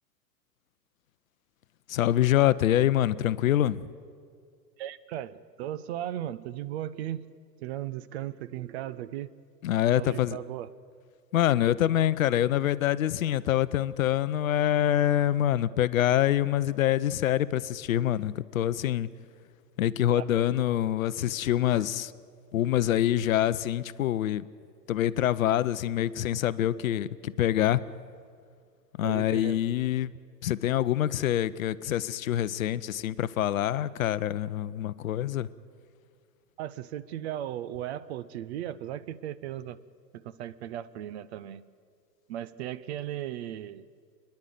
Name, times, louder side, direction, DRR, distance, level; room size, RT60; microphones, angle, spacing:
voice 1, 1.9-3.9 9.6-10.4 11.3-19.1 19.8-22.1 22.5-24.5 24.9-27.8 29.0-30.1 30.4-35.5, left 12 dB, 55° left, 16 dB, 0.7 m, -25 dB
voice 2, 4.8-7.3 7.6-9.3 9.9-10.7 20.2-20.5 21.7-21.8 29.0-29.6 36.6-39.8 40.1-41.6 42.3-43.8, right 12 dB, 40° right, 16 dB, 0.7 m, -36 dB
28.5 x 10.5 x 9.4 m, 2.1 s
figure-of-eight pair, 100°, 50 cm